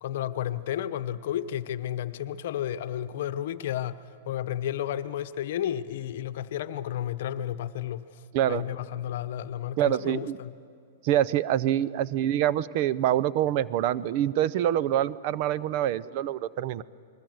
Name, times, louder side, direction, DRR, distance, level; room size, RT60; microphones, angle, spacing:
voice 1, 0.0-4.0 4.2-8.0 8.5-10.5, left 11 dB, 60° left, 12 dB, 0.9 m, -32 dB
voice 2, 9.8-10.4 11.0-16.8, right 12 dB, 45° right, 17 dB, 0.6 m, -25 dB
29.0 x 21.0 x 7.9 m, 2.4 s
hypercardioid pair, 145°, 0 cm